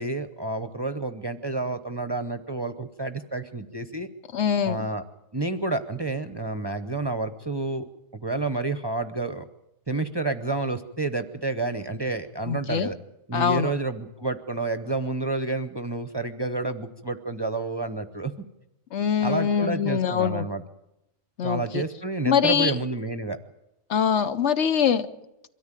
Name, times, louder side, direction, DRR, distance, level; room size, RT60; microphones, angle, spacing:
voice 1, 0.0-4.1 4.6-5.0 5.3-7.8 8.1-9.5 9.9-13.0 13.3-18.3 19.2-20.6 21.4-23.4, right 2 dB, 25° right, 10 dB, 0.7 m, -29 dB
voice 2, 4.3-4.9 12.5-12.9 13.3-13.7 18.9-20.5 21.4-21.8 22.3-22.8 23.9-25.1, left 7 dB, 70° left, 11 dB, 1.2 m, -23 dB
23.0 x 13.5 x 9.1 m, 0.91 s
omnidirectional pair, 1.3 m